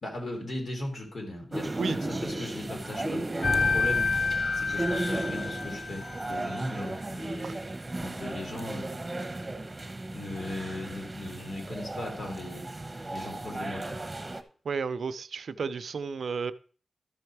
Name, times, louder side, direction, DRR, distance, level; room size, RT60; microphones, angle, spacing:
voice 1, 0.0-3.2 3.5-4.2 4.5-7.5 8.0-8.9 10.1-12.6 13.1-14.0, left 1 dB, 65° left, 3.2 m, -38 dB
sound 1, 1.5-14.4, right 2 dB, 25° right, 1.1 m, -35 dB
sound 2, 3.4-6.3, left 4 dB, 45° left, 0.4 m, -28 dB
voice 2, 14.6-16.5, right 5 dB, 85° right, 0.5 m, -32 dB
13.0 x 5.5 x 4.7 m
wide cardioid pair, 80°, 0 cm